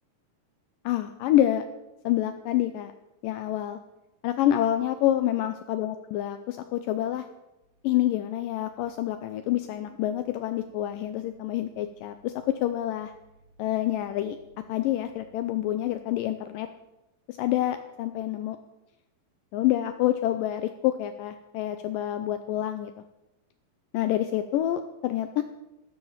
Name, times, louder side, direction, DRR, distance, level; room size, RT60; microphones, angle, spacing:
voice 1, 0.9-1.6 2.0-2.9 3.2-3.8 4.2-7.3 7.8-13.1 13.6-14.4 14.7-16.7 17.3-18.6 19.5-22.9 23.9-25.4, left 13 dB, 80° left, 9 dB, 2.1 m, -27 dB
sound 1, 7.6-16.7, right 2 dB, 55° left, 2.9 m, -62 dB
12.5 x 11.0 x 7.4 m, 0.94 s
omnidirectional pair, 4.3 m